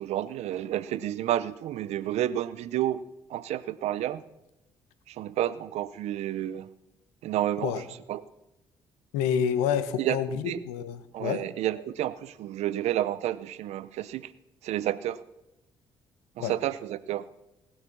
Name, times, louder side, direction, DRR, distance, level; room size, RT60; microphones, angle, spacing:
voice 1, 0.0-3.0 3.3-4.2 5.1-6.7 7.2-7.7 8.1-8.2 10.0-10.2 10.4-10.6 11.1-14.3 14.6-15.2 16.4-17.3, right 12 dB, 70° right, 16 dB, 0.7 m, -30 dB
voice 2, 9.1-11.4 16.4-16.5, left 8 dB, 85° left, 13 dB, 1.0 m, -28 dB
19.0 x 6.6 x 6.0 m, 0.93 s
supercardioid pair, 60°, 12 cm